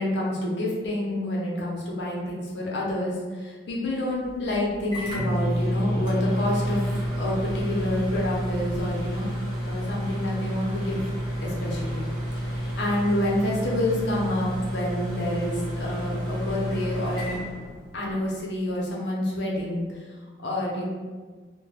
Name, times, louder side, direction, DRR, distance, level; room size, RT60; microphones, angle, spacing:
voice 1, 0.0-6.8 7.2-9.3 9.7-11.0 11.4-12.1 12.4-17.4 17.9-19.8 20.4-20.8, left 1 dB, 75° left, -4 dB, 0.7 m, -28 dB
Microwave oven, 4.2-18.3, equal, 30° right, 0.7 m, -30 dB
2.2 x 2.1 x 3.2 m, 1.4 s
head